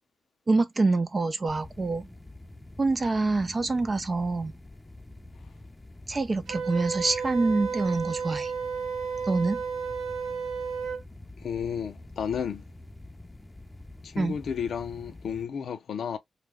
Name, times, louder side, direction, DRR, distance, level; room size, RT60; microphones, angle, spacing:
voice 1, 0.5-2.1 2.8-4.5 6.1-8.5 9.3-9.6 14.2-14.4, right 3 dB, 35° right, 0.6 m, -26 dB
sound 1, 1.5-15.4, left 2 dB, 15° left, 0.7 m, -47 dB
Wind instrument woodwind instrument, 6.5-11.0, right 5 dB, 85° right, 0.7 m, -32 dB
voice 2, 11.4-12.6 14.0-16.2, left 7 dB, 70° left, 0.5 m, -32 dB
2.4 x 2.3 x 3.3 m
supercardioid pair, 55°, 0 cm